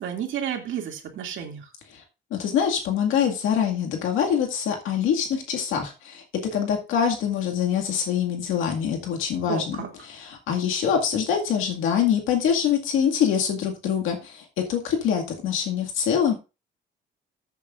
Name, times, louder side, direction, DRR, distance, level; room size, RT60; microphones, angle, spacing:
voice 1, 0.0-1.6 9.5-9.9, right 9 dB, 75° right, 3 dB, 2.5 m, -31 dB
voice 2, 2.3-6.2 6.5-16.3, left 8 dB, 90° left, 2 dB, 2.1 m, -24 dB
14.5 x 8.2 x 2.5 m, 0.29 s
cardioid pair, 90°, 20 cm